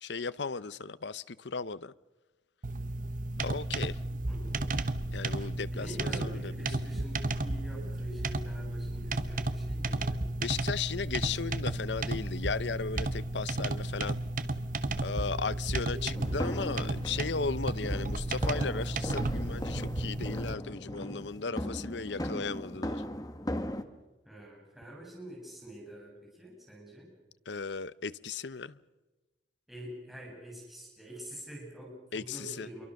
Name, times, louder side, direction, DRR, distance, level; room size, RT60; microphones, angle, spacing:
voice 1, 0.0-1.9 3.4-4.0 5.1-6.5 10.4-14.2 15.0-23.0 27.5-28.8 32.1-32.7, left 5 dB, 75° left, 0.8 m, -36 dB
sound 1, 2.6-20.5, right 2 dB, 45° right, 1.2 m, -33 dB
voice 2, 4.3-4.6 5.7-10.2 24.2-27.1 29.7-32.9, equal, ahead, 7.7 m, -46 dB
sound 2, 16.1-23.8, left 1 dB, 20° left, 1.3 m, -38 dB
28.5 x 23.5 x 6.6 m
head